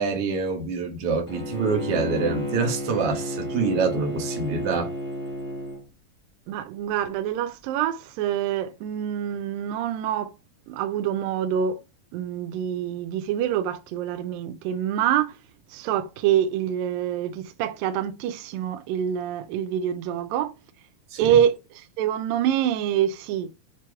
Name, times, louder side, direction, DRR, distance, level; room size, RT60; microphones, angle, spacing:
voice 1, 0.0-4.9 21.1-21.4, right 4 dB, 55° right, 1.7 m, -26 dB
Bowed string instrument, 1.3-5.8, equal, 15° right, 0.3 m, -31 dB
voice 2, 6.5-10.3 10.7-11.8 12.1-15.3 15.7-20.5 21.2-23.5, right 10 dB, 80° right, 2.2 m, -26 dB
6.8 x 3.0 x 4.7 m
omnidirectional pair, 4.3 m